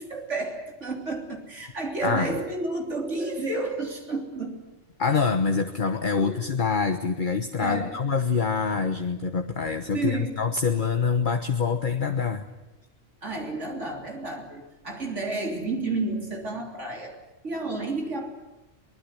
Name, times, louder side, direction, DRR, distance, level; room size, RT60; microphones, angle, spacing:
voice 1, 0.0-4.6 6.2-6.4 7.6-8.0 9.9-10.3 13.2-17.2 17.4-18.3, right 2 dB, 70° right, 2 dB, 3.7 m, -31 dB
voice 2, 2.0-2.4 5.0-12.4, left 5 dB, 40° left, 6 dB, 1.4 m, -25 dB
24.0 x 20.0 x 10.0 m, 1.0 s
omnidirectional pair, 1.3 m